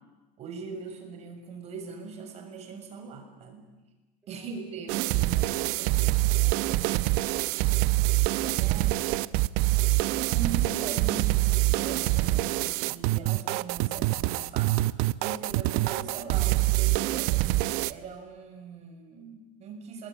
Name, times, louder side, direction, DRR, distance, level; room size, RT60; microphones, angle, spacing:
voice 1, 0.4-3.7 4.3-6.1 8.4-9.0 10.1-17.5 17.9-20.1, right 5 dB, 35° right, 4 dB, 6.6 m, -41 dB
sound 1, 4.9-17.9, right 19 dB, 55° right, 0.8 m, -25 dB
voice 2, 6.4-8.1 8.8-9.2, right 3 dB, 10° right, 0 dB, 3.6 m, -54 dB
25.0 x 22.0 x 10.0 m, 1.1 s
supercardioid pair, 145°, 19 cm